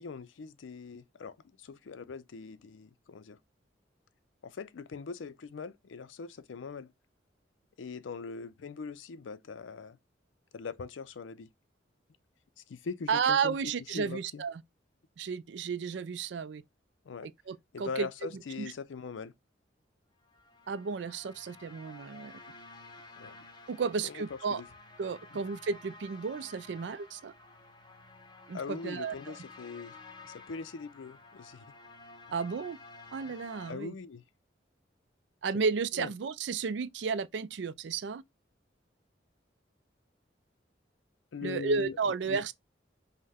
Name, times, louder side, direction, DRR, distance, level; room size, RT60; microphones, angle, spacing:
voice 1, 0.0-3.4 4.4-6.9 7.8-10.0 10.5-11.5 12.7-13.6 13.9-14.4 17.0-17.3 17.7-19.3 23.2-23.4 24.0-24.6 28.5-30.0 30.2-31.7 33.7-34.2 35.9-36.1 41.3-42.5, left 5 dB, 85° left, 0.5 m, -41 dB
voice 2, 13.1-14.6 15.2-16.6 17.5-18.1 18.6-18.7 20.7-22.3 23.7-24.6 25.0-27.3 28.5-29.4 32.3-32.8 33.1-33.9 35.4-38.2 41.4-42.5, right 5 dB, 70° right, 0.4 m, -33 dB
sound 1, 20.2-33.7, left 3 dB, 25° left, 0.7 m, -52 dB
5.4 x 2.1 x 3.4 m
head